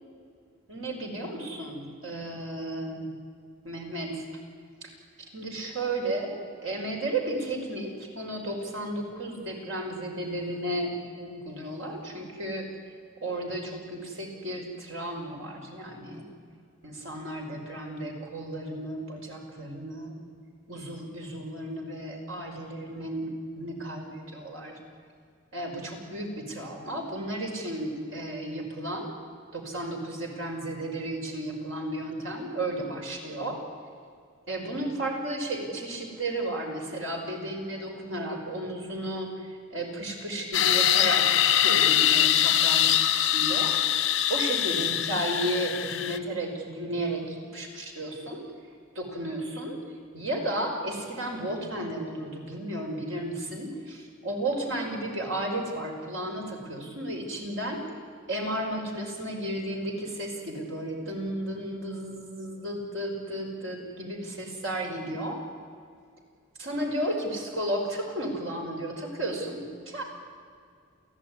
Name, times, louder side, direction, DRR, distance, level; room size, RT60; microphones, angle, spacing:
voice 1, 0.7-3.1 3.6-4.2 4.8-4.9 5.2-12.7 13.2-16.3 16.8-20.2 20.7-23.3 23.5-24.8 25.5-29.1 29.5-33.6 34.5-43.8 44.3-48.5 48.9-49.8 50.1-57.8 58.3-65.4 66.6-70.0, right 1 dB, 75° right, 1 dB, 5.7 m, -33 dB
sound 1, 40.5-46.2, left 11 dB, 65° left, 1.2 m, -23 dB
29.5 x 16.5 x 9.9 m, 2.2 s
head